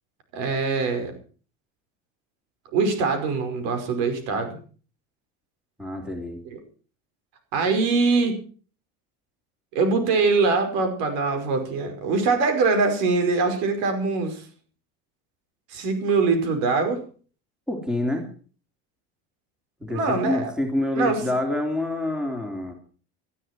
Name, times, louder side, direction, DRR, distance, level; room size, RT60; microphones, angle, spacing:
voice 1, 0.3-1.1 2.7-4.6 7.5-8.4 9.7-14.5 15.7-17.0 19.9-20.5 20.9-21.2, right 4 dB, 75° right, 7 dB, 5.4 m, -23 dB
voice 2, 5.8-6.4 17.7-18.3 19.8-22.7, left 1 dB, 5° right, 3 dB, 3.3 m, -27 dB
19.0 x 13.0 x 4.5 m, 0.40 s
cardioid pair, 145°, 30 cm